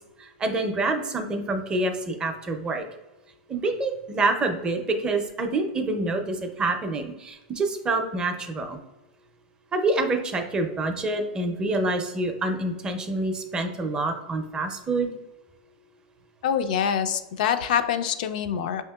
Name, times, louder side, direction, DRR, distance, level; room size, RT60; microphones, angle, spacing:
voice 1, 0.2-2.8 3.5-8.8 9.7-15.2, right 2 dB, 20° right, 5 dB, 0.5 m, -27 dB
voice 2, 16.4-18.8, left 8 dB, 70° left, 9 dB, 0.3 m, -25 dB
5.2 x 2.7 x 2.2 m, 0.99 s
supercardioid pair, 135°, 5 cm